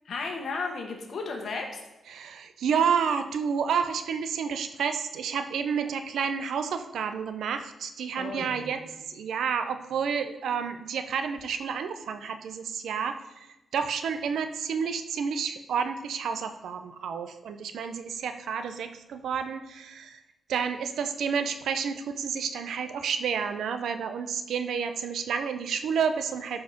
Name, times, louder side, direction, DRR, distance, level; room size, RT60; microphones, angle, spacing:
voice 1, 0.0-1.8 8.1-8.8, left 4 dB, 60° left, 2 dB, 1.6 m, -34 dB
voice 2, 2.1-13.5 13.7-20.2 20.5-26.6, right 6 dB, 90° right, 8 dB, 0.7 m, -30 dB
13.0 x 4.8 x 5.1 m, 0.96 s
wide cardioid pair, 135°, 0 cm